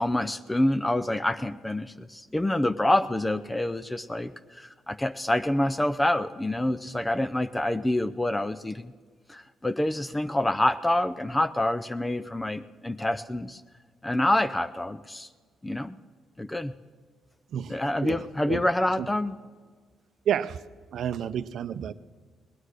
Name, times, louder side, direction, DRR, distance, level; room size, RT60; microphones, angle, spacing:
voice 1, 0.0-8.9 9.3-13.6 14.0-15.3 15.6-16.0 16.4-16.7 17.7-19.3, left 1 dB, 10° left, 13 dB, 0.5 m, -27 dB
voice 2, 18.0-18.6 19.0-19.1 20.3-20.6 20.9-21.9, right 9 dB, 65° right, 13 dB, 0.6 m, -30 dB
19.0 x 9.7 x 6.5 m, 1.5 s
cardioid pair, 90°, 0 cm